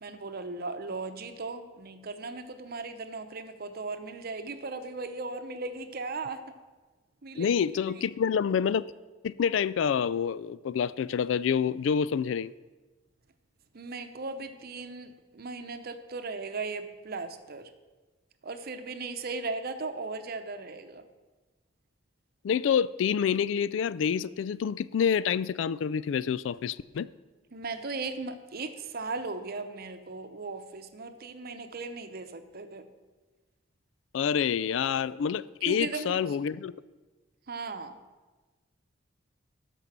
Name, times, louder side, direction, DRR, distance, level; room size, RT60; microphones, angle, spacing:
voice 1, 0.0-6.6 7.2-7.5 13.7-17.7 18.4-21.0 27.5-32.8 35.6-36.2 37.5-38.0, right 3 dB, 55° right, 0.8 m, -37 dB
voice 2, 7.4-8.9 9.2-12.5 22.4-27.1 34.1-36.7, left 7 dB, 70° left, 0.3 m, -27 dB
12.5 x 5.3 x 7.3 m
head